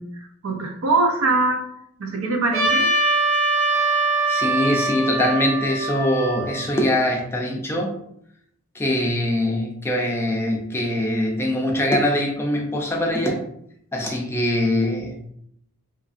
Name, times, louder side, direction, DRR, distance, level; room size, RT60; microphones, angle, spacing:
voice 1, 0.0-1.6 2.0-2.9, right 3 dB, 75° right, 4 dB, 0.5 m, -23 dB
Trumpet, 2.5-7.0, right 2 dB, 50° right, 1.1 m, -22 dB
voice 2, 4.3-7.9 8.7-13.4 13.9-15.2, left 1 dB, 10° left, 0 dB, 0.3 m, -23 dB
2.7 x 2.4 x 2.4 m, 0.71 s
head